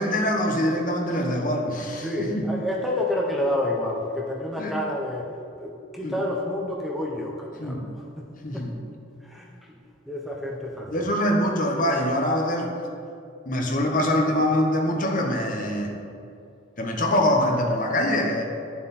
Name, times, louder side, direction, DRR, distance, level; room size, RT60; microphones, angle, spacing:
voice 1, 0.0-2.5 4.6-4.8 6.0-6.2 7.6-7.9 8.4-8.8 10.9-12.7 13.5-15.9 16.8-18.4, left 1 dB, 40° left, 1 dB, 1.1 m, -24 dB
voice 2, 2.0-5.3 5.6-8.7 9.2-9.5 10.1-11.1, left 1 dB, ahead, -2 dB, 0.8 m, -29 dB
11.5 x 7.3 x 4.2 m, 2.5 s
head